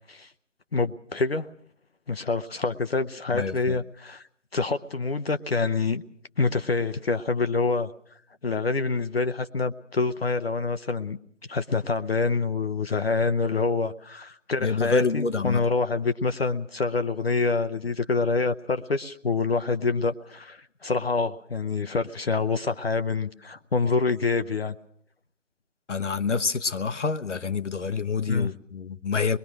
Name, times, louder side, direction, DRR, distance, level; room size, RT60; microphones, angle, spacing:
voice 1, 0.7-1.5 2.1-4.2 4.5-6.0 6.4-7.9 8.4-11.2 11.5-24.7 28.3-28.5, left 4 dB, 55° left, 0.8 m, -26 dB
voice 2, 3.3-3.8 14.6-15.6 25.9-29.4, left 5 dB, 70° left, 1.2 m, -27 dB
23.5 x 22.0 x 6.2 m
figure-of-eight pair, 160°, 37 cm